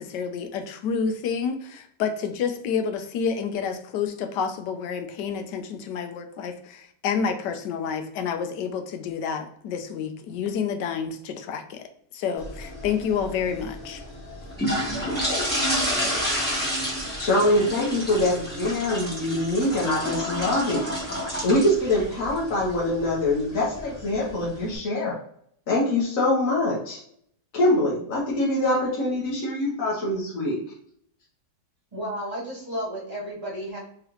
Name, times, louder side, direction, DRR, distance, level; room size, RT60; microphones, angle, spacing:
voice 1, 0.0-11.9 12.1-14.0, left 6 dB, 80° left, 6 dB, 1.2 m, -29 dB
sound 1, 12.4-24.8, equal, 5° left, 1.3 m, -30 dB
voice 2, 17.2-20.8 21.4-25.2 25.7-27.0 27.5-30.6, left 1 dB, 55° left, -5 dB, 1.3 m, -24 dB
voice 3, 31.9-33.8, equal, 25° right, -6 dB, 1.7 m, -32 dB
3.6 x 3.2 x 3.0 m, 0.66 s
omnidirectional pair, 1.8 m